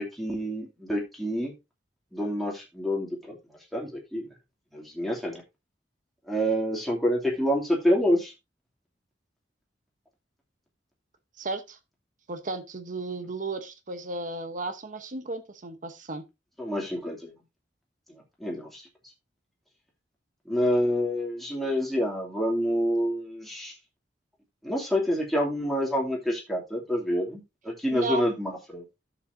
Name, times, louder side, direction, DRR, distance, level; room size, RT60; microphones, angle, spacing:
voice 1, 0.0-1.5 2.1-3.4 3.7-4.3 4.7-5.4 6.3-8.3 16.6-17.4 18.1-18.8 20.5-23.7 24.6-28.8, equal, ahead, 2.8 m, -27 dB
voice 2, 11.4-11.8 12.3-16.2 27.9-28.3, right 3 dB, 45° right, 1.0 m, -34 dB
12.0 x 7.1 x 2.7 m
head